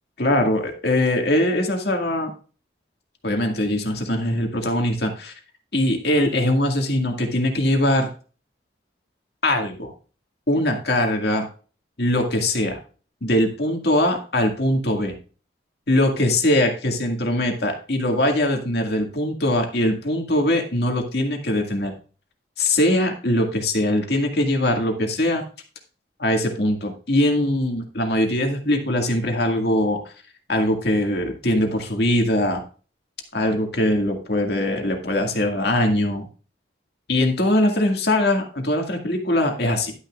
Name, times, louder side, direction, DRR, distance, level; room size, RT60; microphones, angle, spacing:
voice 1, 0.2-2.3 3.2-5.3 5.7-8.1 9.4-9.9 10.5-11.5 12.0-12.8 13.2-15.2 15.9-21.9 22.6-25.4 26.2-30.1 30.5-32.6 33.3-36.3 37.1-39.9, left 1 dB, 65° left, 3 dB, 2.0 m, -21 dB
11.5 x 9.5 x 2.4 m, 0.37 s
head